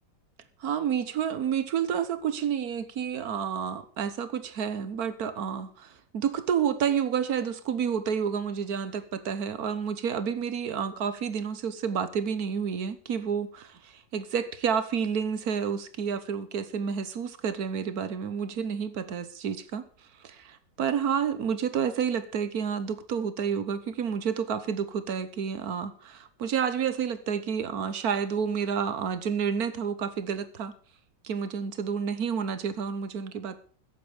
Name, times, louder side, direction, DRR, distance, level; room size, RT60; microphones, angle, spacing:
voice 1, 0.6-19.9 20.2-30.7 31.2-33.6, right 7 dB, 65° right, 1.5 m, -30 dB
14.5 x 10.5 x 5.1 m
omnidirectional pair, 1.8 m